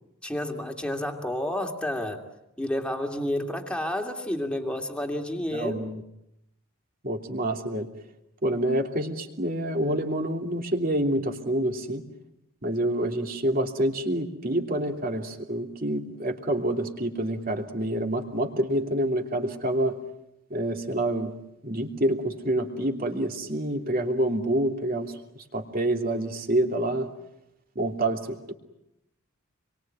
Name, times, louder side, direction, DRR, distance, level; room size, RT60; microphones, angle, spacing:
voice 1, 0.2-2.2 2.6-5.8, left 1 dB, 5° left, 3 dB, 2.6 m, -30 dB
voice 2, 5.5-6.0 7.0-7.9 8.4-12.0 12.6-20.0 20.5-21.3 21.6-27.1 27.7-28.5, right 1 dB, 40° right, 3 dB, 3.0 m, -27 dB
28.0 x 23.5 x 9.1 m, 0.86 s
head